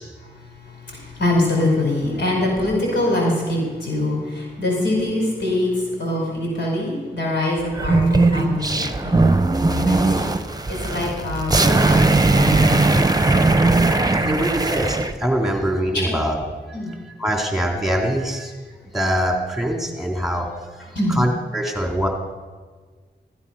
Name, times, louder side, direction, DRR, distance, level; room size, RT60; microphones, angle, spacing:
voice 1, 0.2-9.3 9.6-10.3 10.7-13.2 14.2-14.4 15.9-16.2 16.7-17.0 20.9-21.2, left 1 dB, 90° left, -2 dB, 5.0 m, -24 dB
sound 1, 7.7-15.1, right 3 dB, 20° right, 1.0 m, -18 dB
voice 2, 14.3-16.4 17.2-18.5 18.9-20.5 21.1-22.1, equal, ahead, 0 dB, 3.5 m, -23 dB
14.5 x 13.5 x 5.6 m, 1.4 s
cardioid pair, 45°, 18 cm